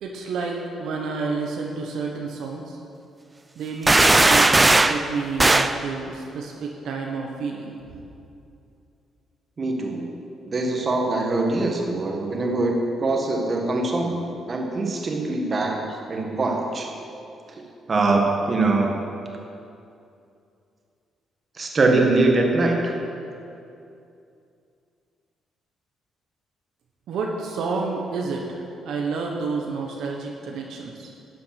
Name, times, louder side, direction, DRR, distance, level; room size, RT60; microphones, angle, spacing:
voice 1, 0.0-2.8 3.6-7.8 27.1-31.1, right 4 dB, 75° right, 0 dB, 1.2 m, -30 dB
sound 1, 3.9-5.0 5.4-5.8, right 2 dB, 20° right, 0.5 m, -16 dB
voice 2, 9.6-10.1 10.4-16.9 17.5-17.6 17.9-18.9 21.5-22.9, right 2 dB, 40° right, 1 dB, 1.7 m, -23 dB
12.0 x 7.6 x 6.0 m, 2.6 s
cardioid pair, 90°, 0 cm